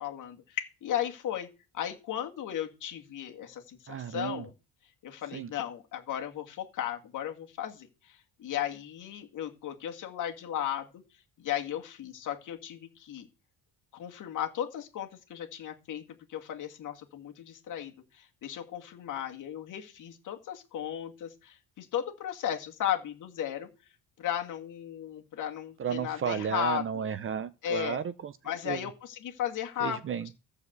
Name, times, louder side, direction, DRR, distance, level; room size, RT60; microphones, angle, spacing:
voice 1, 0.0-1.5 1.7-4.5 5.0-11.0 11.4-13.3 13.9-16.0 16.3-23.7 24.2-27.0 27.6-28.0 28.4-30.0, left 10 dB, 50° left, 2.3 m, -35 dB
voice 2, 3.9-4.4 5.3-5.5 25.8-28.3 28.7-28.9 29.8-30.3, right 8 dB, 35° right, 0.6 m, -33 dB
14.5 x 4.9 x 8.1 m
cardioid pair, 160°, 39 cm